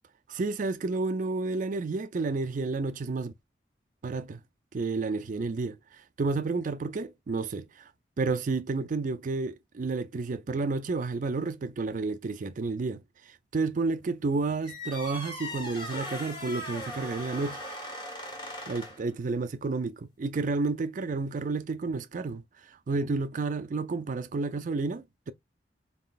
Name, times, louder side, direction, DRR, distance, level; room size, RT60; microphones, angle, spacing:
voice 1, 0.3-3.3 4.0-4.4 4.7-7.9 8.2-17.6 18.7-25.3, right 3 dB, 45° right, 0.4 m, -31 dB
sound 1, 14.6-19.1, left 1 dB, 30° left, 1.7 m, -39 dB
4.3 x 3.8 x 2.3 m
head